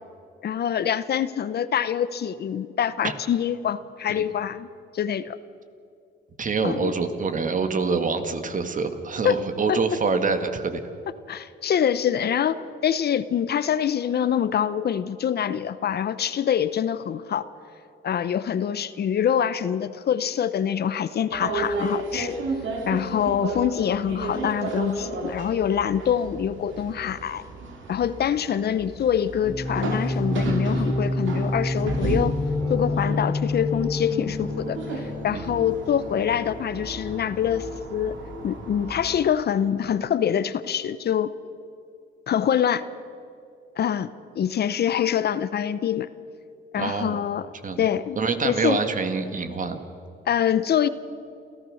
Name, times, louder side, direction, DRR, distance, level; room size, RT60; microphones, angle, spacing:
voice 1, 0.4-4.7 4.9-5.4 6.6-6.9 9.2-9.4 9.7-9.8 11.3-12.6 12.8-17.4 18.0-22.4 22.9-27.4 27.9-32.3 32.7-38.2 38.4-41.3 42.3-42.8 43.8-44.1 44.4-46.1 46.7-47.5 47.8-48.2 48.4-48.8 50.3-50.9, left 9 dB, 55° left, 15 dB, 0.8 m, -25 dB
voice 2, 6.4-10.8 35.3-35.5 46.8-47.2 47.6-47.8 48.2-49.8, right 4 dB, 40° right, 8 dB, 1.8 m, -26 dB
sound 1, 21.3-39.3, right 3 dB, 75° right, 3.0 m, -34 dB
sound 2, 29.4-38.6, left 2 dB, 15° left, 3.1 m, -29 dB
28.5 x 14.5 x 6.4 m, 2.6 s
cardioid pair, 90°, 20 cm